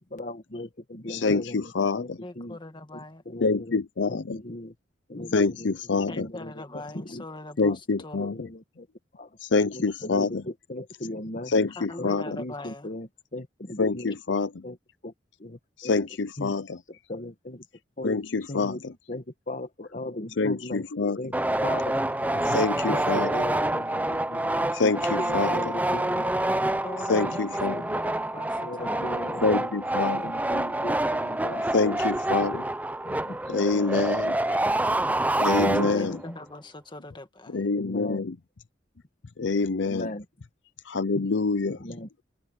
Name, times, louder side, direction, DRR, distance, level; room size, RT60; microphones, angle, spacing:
voice 1, 0.1-2.1 2.3-2.6 2.9-3.8 4.1-4.7 5.1-7.2 7.7-8.9 9.2-9.3 9.7-11.5 12.0-14.4 14.6-14.8 15.0-15.1 15.4-15.9 16.4-16.5 16.9-17.6 18.0-18.2 18.5-20.9 21.2-21.3 21.6-21.9 22.3-22.5 22.8-24.7 25.2-26.8 27.2-27.4 27.6-28.0 28.6-29.7 30.1-32.0 33.0-34.1 35.5-36.1 37.7-38.2 39.8-40.3 41.1-41.3 41.7-42.1, left 1 dB, 45° left, 1.4 m, -38 dB
voice 2, 1.1-2.2 3.4-4.4 5.3-6.1 7.6-8.3 9.4-10.3 11.5-12.2 13.8-14.5 15.8-16.6 18.0-18.8 20.4-21.2 22.5-23.3 24.7-25.6 27.1-27.8 29.4-30.2 31.7-32.6 33.5-34.3 35.4-36.1 37.5-38.3 39.4-40.1 40.9-41.8, left 4 dB, 70° left, 0.6 m, -26 dB
voice 3, 2.2-3.2 6.1-8.3 11.8-12.9 26.8-29.2 35.8-37.7, left 2 dB, 25° left, 1.8 m, -41 dB
sound 1, 21.3-36.3, right 1 dB, 10° right, 0.7 m, -27 dB
head